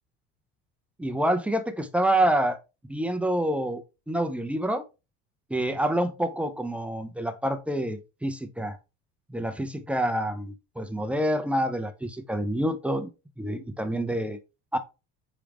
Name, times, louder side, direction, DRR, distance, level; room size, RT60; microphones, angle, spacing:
voice 1, 1.0-2.6 2.9-4.8 5.5-8.8 9.3-13.1 13.4-14.4 14.7-14.8, right 1 dB, 5° right, 0.4 m, -27 dB
4.9 x 3.4 x 3.0 m
cardioid pair, 135°, 30 cm